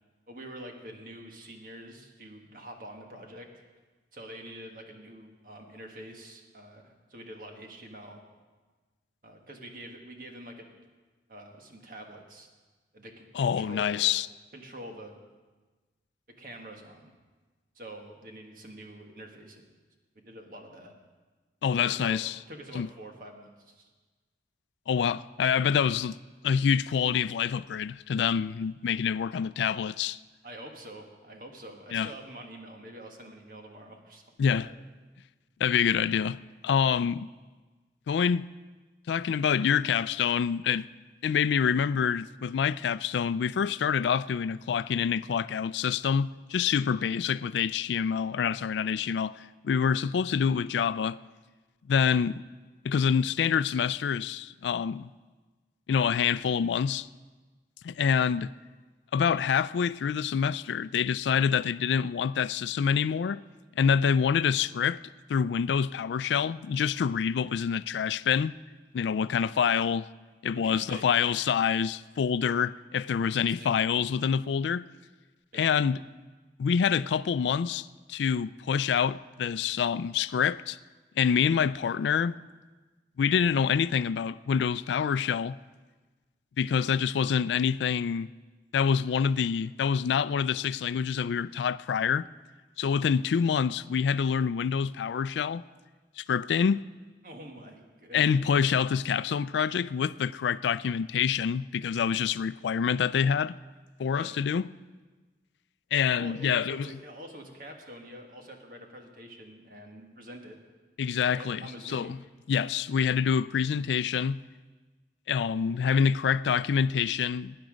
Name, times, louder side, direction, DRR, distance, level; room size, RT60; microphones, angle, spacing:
voice 1, 0.3-3.6 4.1-8.3 9.2-10.7 11.3-12.5 12.9-14.1 14.5-15.2 16.3-17.1 17.7-19.6 20.1-21.0 21.8-22.2 22.5-23.9 30.4-34.2 34.6-34.8 70.5-71.1 73.2-73.8 75.5-75.7 97.2-98.4 104.1-104.4 106.2-110.6 111.3-112.2, right 1 dB, 50° right, 1.6 m, -46 dB
voice 2, 13.3-14.3 21.6-22.4 22.7-22.9 24.9-26.2 26.4-30.2 31.9-32.1 34.4-34.7 35.6-36.4 36.6-37.3 38.1-38.5 39.1-40.9 41.2-51.2 51.9-52.4 52.8-55.1 55.9-57.1 57.8-58.5 59.1-63.4 63.8-65.0 65.3-68.6 68.9-70.1 70.4-74.9 75.5-76.0 76.6-80.8 81.2-82.4 83.2-85.6 86.6-88.3 88.7-92.3 92.8-95.6 96.2-96.8 98.1-103.6 104.0-104.6 105.9-106.9 111.0-112.2 112.5-114.4 115.3-117.6, left 7 dB, 85° left, 0.3 m, -26 dB
18.5 x 9.7 x 5.1 m
head